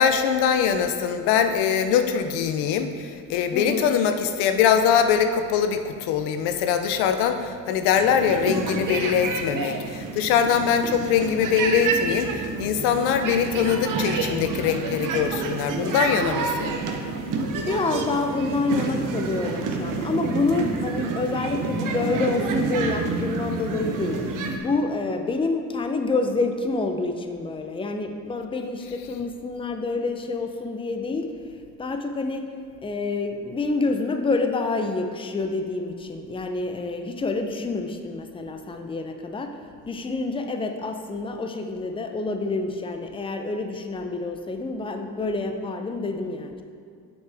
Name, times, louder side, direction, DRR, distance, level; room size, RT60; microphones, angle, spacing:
voice 1, 0.0-16.7 28.8-29.1, left 7 dB, 90° left, 8 dB, 0.6 m, -22 dB
voice 2, 3.5-3.9 17.7-24.2 24.6-31.3 31.8-32.4 32.8-39.5 39.9-46.6, left 3 dB, 15° left, 5 dB, 0.5 m, -27 dB
sound 1, 7.9-24.6, right 4 dB, 55° right, 0.8 m, -28 dB
7.3 x 5.9 x 3.4 m, 2.2 s
cardioid pair, 90°, 38 cm